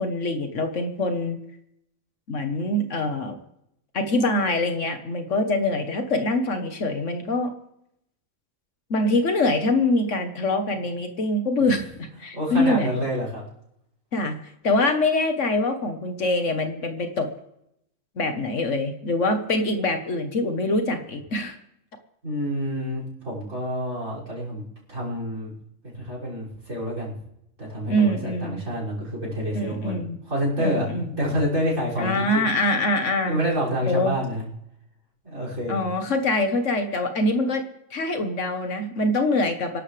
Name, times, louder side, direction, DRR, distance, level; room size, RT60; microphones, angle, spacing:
voice 1, 0.0-1.4 2.3-3.4 3.9-7.5 8.9-13.0 14.1-14.4 14.6-17.3 18.2-21.6 27.9-28.6 29.5-30.2 30.6-31.1 32.0-33.4 33.9-34.1 35.7-37.6 37.9-39.8, left 2 dB, 60° left, 6 dB, 1.6 m, -24 dB
voice 2, 12.3-13.4 22.2-25.5 25.8-27.2 27.6-32.4 33.3-34.4 35.2-35.8, equal, 60° right, -3 dB, 6.7 m, -28 dB
26.5 x 11.5 x 3.4 m, 0.79 s
omnidirectional pair, 1.5 m